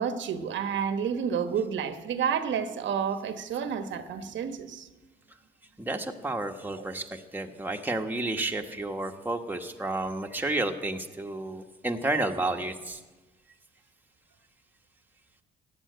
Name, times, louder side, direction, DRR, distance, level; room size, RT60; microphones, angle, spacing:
voice 1, 0.0-4.9 6.7-6.9, right 7 dB, 70° right, 1.1 m, -30 dB
voice 2, 5.8-13.0, right 2 dB, 10° right, 1.3 m, -31 dB
15.0 x 9.2 x 9.2 m
cardioid pair, 90°, 20 cm